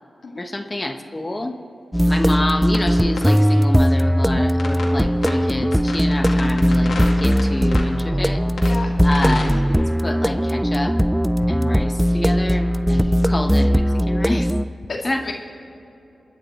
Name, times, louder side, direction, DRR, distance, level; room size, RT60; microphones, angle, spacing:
voice 1, 0.4-1.6 2.1-8.5 9.0-11.0 11.5-14.5 15.0-15.3, left 1 dB, 30° left, 6 dB, 1.1 m, -27 dB
sound 1, 1.9-14.6, equal, 5° right, 0.4 m, -19 dB
sound 2, 2.7-2.8 3.2-3.3 4.6-4.9 5.2-5.4 5.7-7.4 7.7-7.9 8.6-8.7 9.1-9.5, left 3 dB, 80° left, 2.3 m, -29 dB
voice 2, 8.6-9.0 11.4-11.5 14.9-15.3, left 3 dB, 65° left, 1 dB, 2.0 m, -31 dB
28.0 x 9.9 x 4.2 m, 2.9 s
cardioid pair, 50°, 0 cm